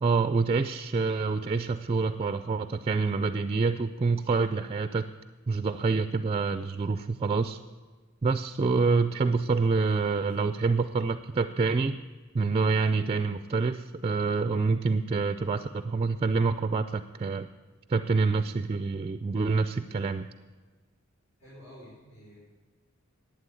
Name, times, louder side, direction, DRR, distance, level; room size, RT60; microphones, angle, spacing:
voice 1, 0.0-5.1 5.5-7.6 8.2-12.0 12.3-17.5 17.9-20.3, right 4 dB, 30° right, 10 dB, 0.4 m, -27 dB
voice 2, 9.7-10.1 21.4-22.4, equal, 70° left, -9 dB, 4.9 m, -50 dB
11.5 x 8.8 x 8.3 m, 1.4 s
head